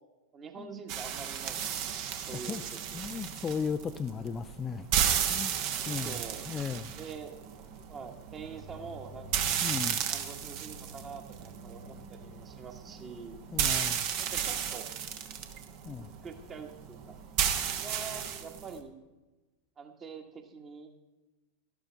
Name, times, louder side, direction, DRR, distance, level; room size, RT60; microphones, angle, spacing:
voice 1, 0.3-2.7 5.9-6.5 7.0-7.3 7.9-9.3 10.0-13.4 14.2-15.0 16.2-17.2 17.8-19.0 19.8-20.9, right 5 dB, 25° right, 5 dB, 1.5 m, -45 dB
sound 1, 0.9-18.8, right 8 dB, 45° right, 1.1 m, -34 dB
voice 2, 2.3-2.6 2.9-4.9 5.3-5.6 5.8-6.9 9.6-10.0 13.5-14.1 15.8-16.1, left 6 dB, 20° left, 9 dB, 0.4 m, -36 dB
12.5 x 12.5 x 3.4 m, 1.1 s
figure-of-eight pair, 90°, 0 cm